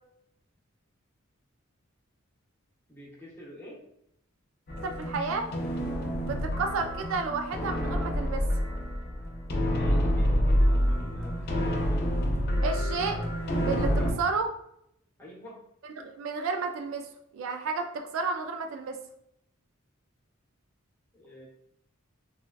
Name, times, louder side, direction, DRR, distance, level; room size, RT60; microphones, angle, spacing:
voice 1, 2.9-3.8 9.7-12.0 13.9-14.3 15.2-15.5 21.1-21.5, left 1 dB, 10° left, -5 dB, 0.8 m, -47 dB
sound 1, 4.7-14.1, equal, 50° left, 0.5 m, -27 dB
voice 2, 4.8-5.5 6.3-8.4 12.6-13.2 13.7-14.5 16.0-19.0, right 4 dB, 65° right, 5 dB, 0.3 m, -31 dB
3.3 x 2.2 x 2.3 m, 0.76 s
head